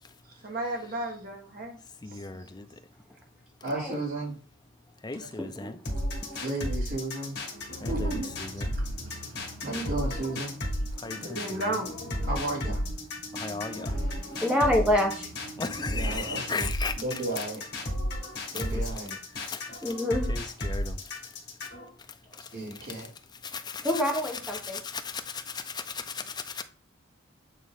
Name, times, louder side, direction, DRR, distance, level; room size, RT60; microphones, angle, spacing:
voice 1, 0.4-1.8 2.3-2.5 6.3-6.4 11.2-11.9, right 2 dB, 45° right, 1.5 m, -33 dB
voice 2, 2.0-2.7 5.0-5.8 7.8-8.7 11.0-11.8 13.3-13.9 15.6-17.2 18.5-18.8 19.4-19.7 20.3-21.0 23.4-26.6, left 4 dB, 20° left, 0.5 m, -37 dB
voice 3, 3.6-4.3 6.4-7.3 7.9-8.3 9.6-10.5 12.3-12.8 15.9-16.7 16.9-17.6 18.5-19.2 22.5-23.1, right 2 dB, 60° right, 3.2 m, -33 dB
voice 4, 5.4-5.7 14.4-15.3 19.8-20.3 23.8-24.8, left 1 dB, 5° right, 0.9 m, -26 dB
sound 1, 5.9-21.8, left 1 dB, 50° left, 2.0 m, -33 dB
sound 2, 7.4-20.0, right 3 dB, 80° right, 1.9 m, -46 dB
8.4 x 3.6 x 3.6 m
head